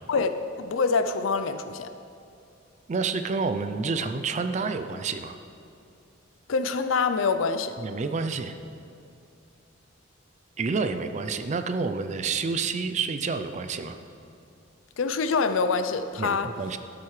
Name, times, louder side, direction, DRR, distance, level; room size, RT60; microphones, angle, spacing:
voice 1, 0.1-1.9 6.5-7.7 15.0-16.5, left 4 dB, 75° left, 10 dB, 0.5 m, -25 dB
voice 2, 2.9-5.4 7.8-8.5 10.6-14.0 16.2-16.8, right 4 dB, 35° right, 9 dB, 0.4 m, -29 dB
12.0 x 7.4 x 3.2 m, 2.6 s
head